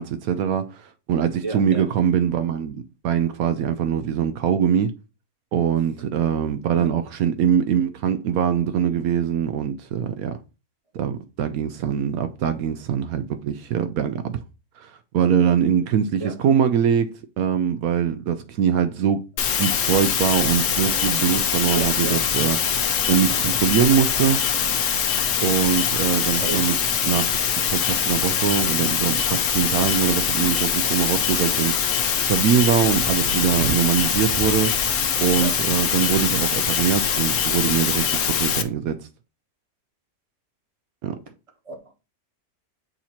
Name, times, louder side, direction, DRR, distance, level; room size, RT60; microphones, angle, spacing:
voice 1, 0.0-4.9 5.5-10.4 10.9-14.4 14.8-19.2 19.6-22.7 23.1-24.4 25.4-26.7 27.0-27.4 27.7-34.8 35.2-39.1 41.0-41.2, right 8 dB, 80° right, 1.0 m, -23 dB
voice 2, 1.4-1.8 6.7-6.9 16.2-16.4 21.7-22.2 26.4-26.8 35.4-35.6 41.6-41.9, right 3 dB, 25° right, 1.3 m, -32 dB
sound 1, 19.4-38.6, left 7 dB, 80° left, 1.2 m, -23 dB
Thunder, 32.8-36.7 38.0-38.1, right 6 dB, 55° right, 0.6 m, -35 dB
8.4 x 2.8 x 4.3 m
omnidirectional pair, 1.5 m